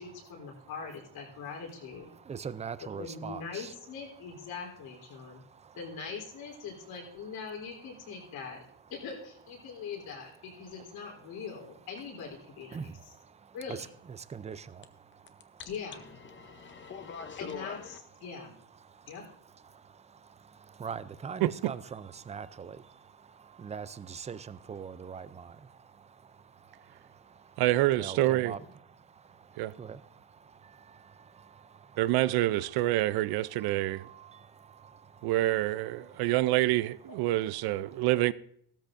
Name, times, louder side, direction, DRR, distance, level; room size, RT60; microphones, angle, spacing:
voice 1, 0.0-2.1 3.0-5.4 5.8-8.6 8.9-12.8 13.5-13.9 15.7-16.1 17.4-18.5 19.1-19.2 36.0-36.1 37.1-37.2 38.0-38.1, left 5 dB, 75° left, 3.6 m, -42 dB
voice 2, 2.1-3.7 5.1-5.8 8.1-8.3 9.6-9.9 10.5-11.4 12.7-15.7 16.3-17.4 18.2-18.3 18.7-27.6 27.9-28.6 28.9-33.0 33.5-35.5 36.0-36.3 37.2-37.3 37.9-38.1, right 6 dB, 20° right, 0.4 m, -45 dB
sound 1, 14.8-14.9 15.1-18.0, left 6 dB, 30° left, 0.8 m, -43 dB
voice 3, 21.4-21.7 27.6-28.5 29.6-29.8 32.0-34.1 35.2-38.3, right 16 dB, 75° right, 0.5 m, -27 dB
15.0 x 13.5 x 2.6 m
cardioid pair, 125°, 38 cm